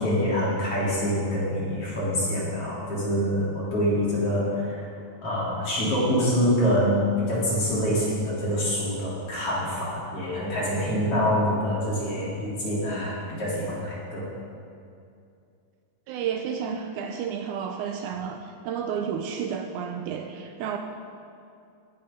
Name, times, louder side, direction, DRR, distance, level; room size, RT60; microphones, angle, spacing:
voice 1, 0.0-4.8 5.2-14.2, equal, 45° left, -7 dB, 4.1 m, -25 dB
voice 2, 16.1-20.8, right 7 dB, 80° right, 5 dB, 2.0 m, -31 dB
18.0 x 10.5 x 3.8 m, 2.5 s
omnidirectional pair, 3.8 m